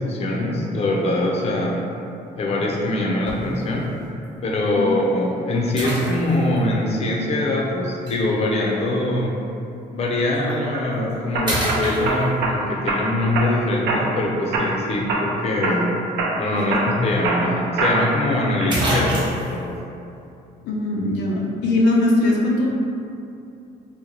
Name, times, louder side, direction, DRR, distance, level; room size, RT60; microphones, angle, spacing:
voice 1, 0.0-1.8 2.4-3.9 4.4-9.3 9.9-15.9 16.4-19.2 19.5-19.8, left 1 dB, 40° left, -2 dB, 0.5 m, -23 dB
sound 1, 3.3-3.6 4.2-4.3 5.8-6.6 8.1-8.2 10.3-10.5 11.0-11.1 11.4-12.5 16.6-16.7 17.0-17.1 18.2-18.3 18.7-19.6, right 1 dB, 25° right, 0.9 m, -26 dB
sound 2, 10.4-10.8 11.3-12.6 12.9-13.5 13.9-14.2 14.5-15.3 15.6-15.9 16.2-18.2 18.6-19.1, right 2 dB, 85° right, 0.5 m, -24 dB
voice 2, 20.6-22.7, left 2 dB, 85° left, -3 dB, 0.5 m, -20 dB
2.9 x 2.1 x 3.8 m, 2.6 s
cardioid pair, 110°, 17 cm